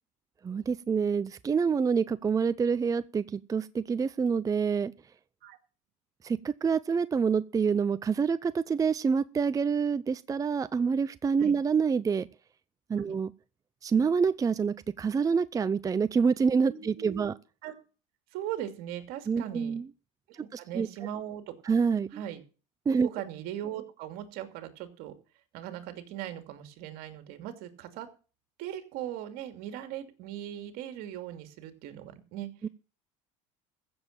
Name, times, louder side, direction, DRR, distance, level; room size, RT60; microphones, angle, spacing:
voice 1, 0.4-4.9 6.2-12.3 12.9-13.3 13.8-17.3 19.3-19.9 20.5-20.9 21.6-22.2 22.9-23.1 32.6-32.7, right 6 dB, 20° right, 0.6 m, -27 dB
voice 2, 16.6-17.3 17.6-17.7 18.3-19.8 20.3-21.7 22.1-22.4 23.0-25.1 25.5-28.1 28.6-32.5, right 11 dB, 70° right, 2.7 m, -39 dB
15.0 x 7.4 x 7.4 m
supercardioid pair, 100°, 16 cm